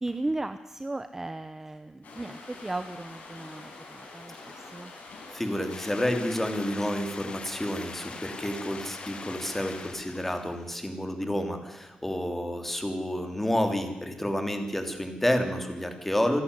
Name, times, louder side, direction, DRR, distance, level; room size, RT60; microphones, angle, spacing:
voice 1, 0.0-4.9, right 2 dB, 15° right, 10 dB, 0.9 m, -36 dB
sound 1, 2.0-9.9, left 3 dB, 80° left, 6.9 m, -46 dB
voice 2, 5.3-16.4, left 1 dB, 10° left, 6 dB, 3.1 m, -30 dB
sound 2, 5.7-10.7, left 4 dB, 40° left, 1.8 m, -43 dB
27.0 x 11.5 x 9.8 m, 1.0 s
wide cardioid pair, 120°, 3 cm